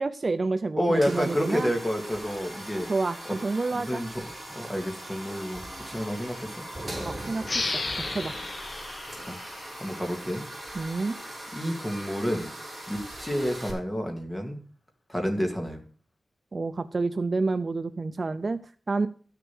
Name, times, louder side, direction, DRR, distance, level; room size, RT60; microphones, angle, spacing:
voice 1, 0.0-1.7 2.9-4.0 7.0-7.7 8.1-8.4 10.7-11.2 16.5-19.1, right 3 dB, 40° right, 11 dB, 0.5 m, -29 dB
voice 2, 0.8-2.9 3.7-4.1 4.5-6.6 9.3-9.4 9.8-10.4 11.5-12.5 12.9-14.6 15.1-15.8, equal, 10° left, 3 dB, 2.4 m, -29 dB
sound 1, 0.9-13.7, right 1 dB, 15° right, 5.3 m, -40 dB
sound 2, 7.4-10.7, left 3 dB, 35° left, 1.2 m, -34 dB
12.5 x 6.8 x 6.2 m, 0.42 s
wide cardioid pair, 140°, 0 cm